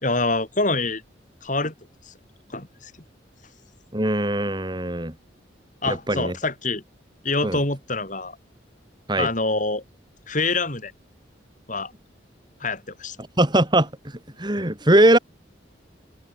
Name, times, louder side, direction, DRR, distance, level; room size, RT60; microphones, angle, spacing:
voice 1, 0.0-1.0 1.4-1.7 2.5-2.9 5.8-6.8 7.2-8.4 9.2-9.8 10.3-10.9 11.7-11.9 12.6-13.2, left 3 dB, 40° left, 5.6 m, -25 dB
voice 2, 3.9-5.1 5.9-6.4 7.4-7.6 9.1-9.3 13.4-15.2, right 1 dB, 25° right, 3.0 m, -21 dB
head